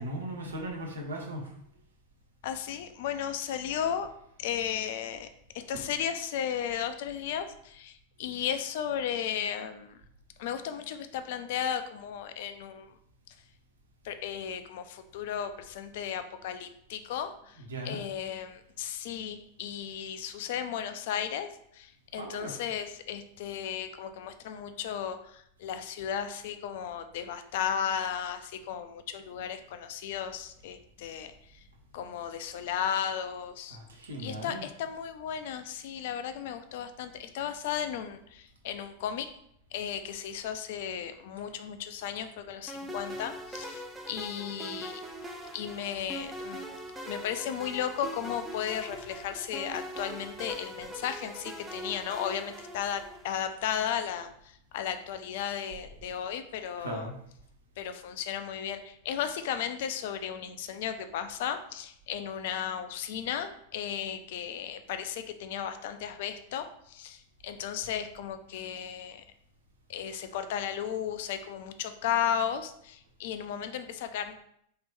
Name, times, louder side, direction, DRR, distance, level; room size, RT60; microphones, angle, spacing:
voice 1, 0.0-1.5 17.7-18.0 22.2-22.6 33.7-34.7 56.8-57.1, right 1 dB, 70° right, 1 dB, 0.7 m, -37 dB
voice 2, 2.4-4.1 4.4-5.3 5.5-10.0 10.4-12.9 14.0-17.6 17.8-21.5 21.7-31.3 31.9-33.8 34.2-39.3 39.7-45.0 45.5-46.6 47.0-57.1 57.8-69.2 69.9-74.3, left 9 dB, 50° left, 9 dB, 0.3 m, -35 dB
sound 1, 42.7-53.4, right 1 dB, 10° right, 0.5 m, -42 dB
3.3 x 2.8 x 3.1 m, 0.70 s
figure-of-eight pair, 90°, 0 cm